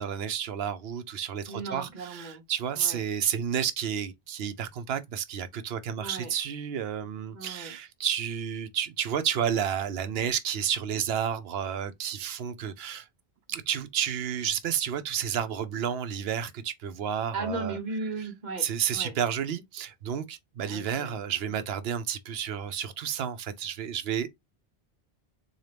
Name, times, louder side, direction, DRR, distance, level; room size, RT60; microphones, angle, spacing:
voice 1, 0.0-13.1 13.5-17.8 18.6-24.3, right 8 dB, 75° right, 0.8 m, -31 dB
voice 2, 1.5-2.4 2.7-3.0 6.0-6.3 7.3-7.7 17.3-19.1 20.6-21.2, right 3 dB, 45° right, 1.0 m, -36 dB
3.9 x 2.7 x 3.3 m
omnidirectional pair, 1.1 m